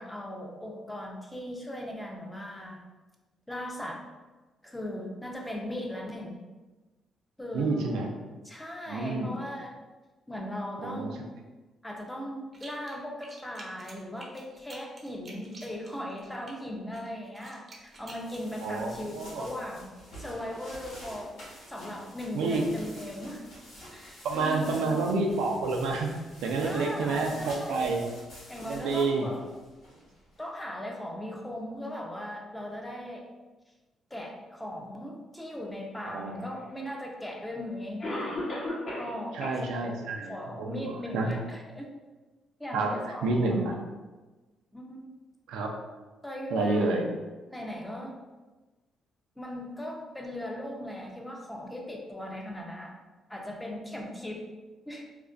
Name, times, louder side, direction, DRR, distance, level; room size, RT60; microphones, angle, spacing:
voice 1, 0.0-2.8 3.5-4.0 4.6-6.4 7.4-8.0 8.4-9.7 10.3-11.2 11.8-23.4 23.9-24.9 26.6-27.9 28.5-29.4 30.4-33.3 34.1-38.5 39.0-39.9 40.3-41.9 42.6-43.8 44.7-45.1 46.2-46.9 47.5-48.1 49.4-53.0 53.3-54.5 54.9-55.0, left 1 dB, 10° left, 0 dB, 0.4 m, -38 dB
voice 2, 7.5-8.1 8.9-9.3 10.8-11.1 18.6-19.4 22.3-22.6 24.2-26.1 26.4-28.0 28.7-29.3 36.0-36.4 39.3-41.3 42.7-42.9 43.2-43.7 45.5-45.7 46.5-47.0, right 3 dB, 90° right, 1 dB, 0.3 m, -29 dB
sound 1, 12.5-13.0 13.2-16.5 16.9-18.4, right 2 dB, 40° right, 0.5 m, -49 dB
sound 2, 17.9-30.4, equal, 80° left, 0.9 m, -49 dB
Cough, 36.9-37.0 38.0-39.2 39.4-39.5 40.1-40.2 40.7-40.8, left 1 dB, 50° left, 0.8 m, -33 dB
2.4 x 2.1 x 2.4 m, 1.2 s
cardioid pair, 90°, 0 cm